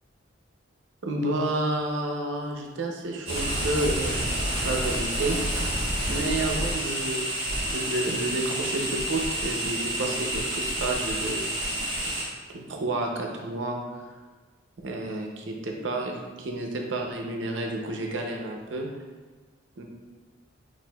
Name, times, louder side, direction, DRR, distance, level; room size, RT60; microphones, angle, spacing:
voice 1, 1.0-4.3 4.6-5.7 6.1-7.4 7.7-11.5 12.7-14.0 14.8-18.9 19.8-19.9, right 2 dB, 65° right, 1 dB, 0.6 m, -30 dB
sound 1, 3.3-12.2, right 1 dB, 25° right, 1.2 m, -29 dB
6.0 x 2.5 x 2.2 m, 1.4 s
head